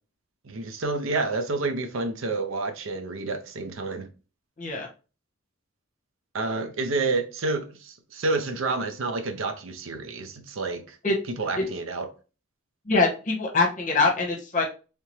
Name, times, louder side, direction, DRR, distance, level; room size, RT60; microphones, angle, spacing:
voice 1, 0.4-4.1 6.3-11.0 11.4-12.1, right 3 dB, 80° right, 0.6 m, -29 dB
voice 2, 4.6-4.9 11.0-11.1 11.6-11.7 12.9-14.6, left 3 dB, 40° left, 1.0 m, -23 dB
3.2 x 2.9 x 3.1 m
head